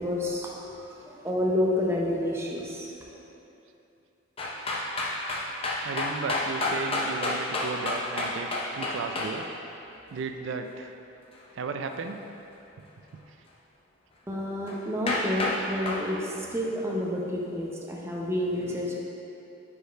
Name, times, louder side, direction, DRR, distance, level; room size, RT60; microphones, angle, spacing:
voice 1, 0.0-2.9 14.3-19.0, left 1 dB, 15° right, -3 dB, 0.6 m, -29 dB
sound 1, 4.4-9.3 14.7-14.8 15.1-15.6 15.9-16.0, left 2 dB, 30° left, 0.6 m, -29 dB
voice 2, 5.8-9.5 10.1-10.9 11.5-12.2, right 4 dB, 75° right, 6 dB, 0.4 m, -34 dB
5.1 x 4.5 x 4.4 m, 2.8 s
head